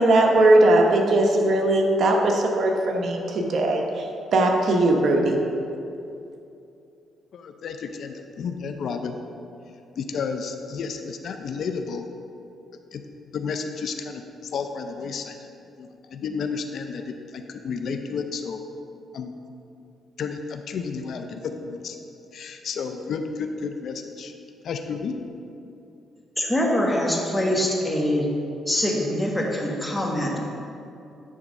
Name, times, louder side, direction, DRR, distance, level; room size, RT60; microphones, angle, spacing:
voice 1, 0.0-4.1 4.3-5.4, right 2 dB, 60° right, 2 dB, 0.9 m, -19 dB
voice 2, 7.3-9.2 10.0-12.0 12.9-13.0 13.3-15.4 15.8-18.6 19.1-19.3 20.2-22.0 22.3-24.3 24.6-25.2, left 5 dB, 65° left, 6 dB, 0.5 m, -32 dB
voice 3, 26.4-28.3 28.7-30.4, left 1 dB, 10° left, -1 dB, 1.4 m, -24 dB
9.9 x 3.6 x 5.3 m, 2.7 s
cardioid pair, 90°, 0 cm